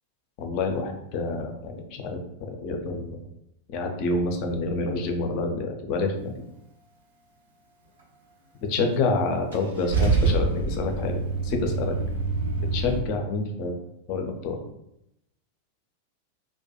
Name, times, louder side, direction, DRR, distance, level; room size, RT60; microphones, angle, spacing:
voice 1, 0.4-3.2 3.7-6.3 8.7-11.9 12.7-13.7 14.1-14.6, left 3 dB, 45° left, 3 dB, 0.4 m, -28 dB
Car / Engine starting / Idling, 9.5-13.0, right 4 dB, 65° right, 0.5 m, -26 dB
2.2 x 2.1 x 2.7 m, 0.81 s
figure-of-eight pair, 90°, 0 cm